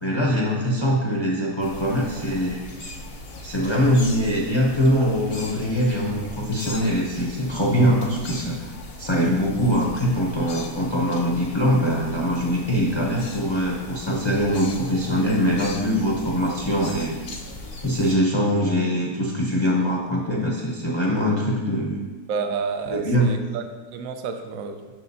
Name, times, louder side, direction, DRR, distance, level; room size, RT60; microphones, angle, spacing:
voice 1, 0.0-2.6 3.4-8.7 9.0-17.2 17.8-22.0 22.9-23.3, equal, 30° left, -3 dB, 0.6 m, -22 dB
sound 1, 1.6-18.1, left 2 dB, 50° left, 0.9 m, -39 dB
voice 2, 22.3-23.6 23.9-24.8, right 5 dB, 70° right, 7 dB, 1.0 m, -29 dB
7.5 x 5.7 x 2.7 m, 1.3 s
omnidirectional pair, 1.6 m